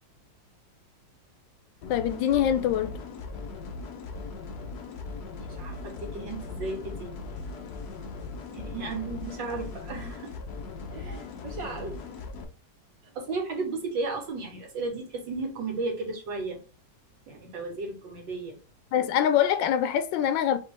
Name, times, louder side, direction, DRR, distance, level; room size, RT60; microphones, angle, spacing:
sound 1, 1.8-12.4, left 4 dB, 65° left, 1.3 m, -39 dB
voice 1, 1.9-3.0 18.9-20.6, left 10 dB, 85° left, 1.3 m, -24 dB
voice 2, 5.4-7.1 8.5-10.4 10.9-11.9 13.2-16.6 17.3-18.6, right 3 dB, 85° right, 2.0 m, -34 dB
5.1 x 3.0 x 3.3 m
omnidirectional pair, 2.0 m